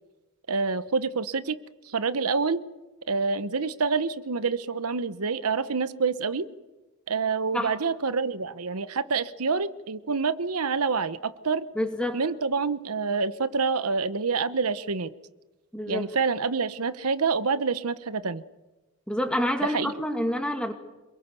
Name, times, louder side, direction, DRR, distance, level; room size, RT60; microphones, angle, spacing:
voice 1, 0.5-1.6 1.9-2.6 3.1-6.5 7.1-11.7 12.1-15.1 15.9-18.4 19.7-19.9, right 4 dB, 90° right, 13 dB, 1.0 m, -27 dB
voice 2, 11.8-12.2 15.7-16.1 19.1-20.7, left 1 dB, 5° left, 4 dB, 2.4 m, -28 dB
27.5 x 22.0 x 6.9 m, 1.1 s
head